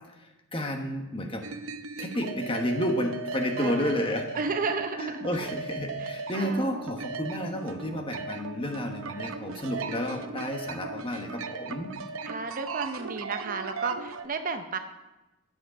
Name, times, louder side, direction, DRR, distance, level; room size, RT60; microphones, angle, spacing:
voice 1, 0.5-1.4 2.0-4.4 5.0-11.9, equal, 25° left, 3 dB, 1.2 m, -31 dB
sound 1, 1.4-14.3, right 4 dB, 75° right, 0.8 m, -37 dB
voice 2, 3.6-4.1 4.4-5.2 6.0-6.8 12.2-14.8, right 4 dB, 40° right, 7 dB, 0.7 m, -33 dB
11.5 x 7.5 x 5.8 m, 1.0 s
head